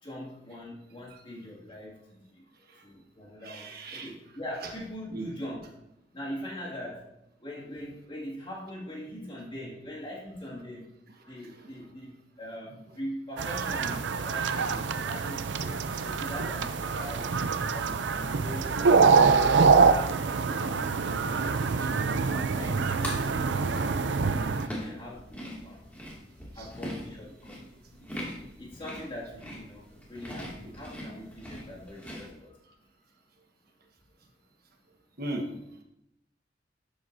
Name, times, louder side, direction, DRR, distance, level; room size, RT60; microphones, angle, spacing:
voice 1, 0.0-2.5 2.8-5.6 6.1-7.1 7.4-10.9 11.3-17.3 17.7-19.7 20.5-20.8 22.2-23.5 24.4-25.9 26.5-27.6 28.0-28.2 28.6-32.5, equal, 30° left, -4 dB, 2.3 m, -42 dB
voice 2, 3.4-4.1 5.1-5.3 11.2-11.7 15.6-15.8 19.1-19.6 21.8-22.3 26.5-26.7 35.2-35.5, right 1 dB, 55° right, 2 dB, 1.3 m, -39 dB
sound 1, 13.4-24.7, right 5 dB, 75° right, 0.5 m, -25 dB
sound 2, 16.5-32.3, equal, 10° left, 2.3 m, -44 dB
12.0 x 8.0 x 2.7 m, 0.85 s
head